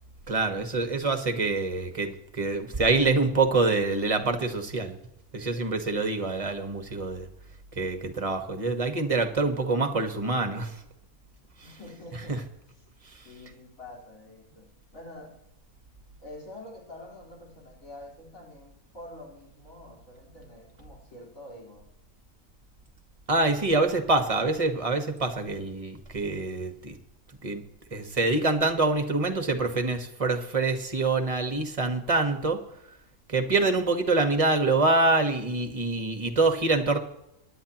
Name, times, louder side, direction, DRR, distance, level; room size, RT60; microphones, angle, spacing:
voice 1, 0.3-5.0 5.3-7.3 7.7-10.8 12.3-12.4 13.1-13.2 23.3-27.0 27.4-27.6 27.9-32.6 33.3-37.0, right 3 dB, 25° right, 6 dB, 1.4 m, -25 dB
voice 2, 11.6-12.4 13.2-15.4 16.2-21.9, left 1 dB, 65° left, -4 dB, 4.9 m, -46 dB
23.5 x 10.5 x 3.0 m, 0.83 s
omnidirectional pair, 1.5 m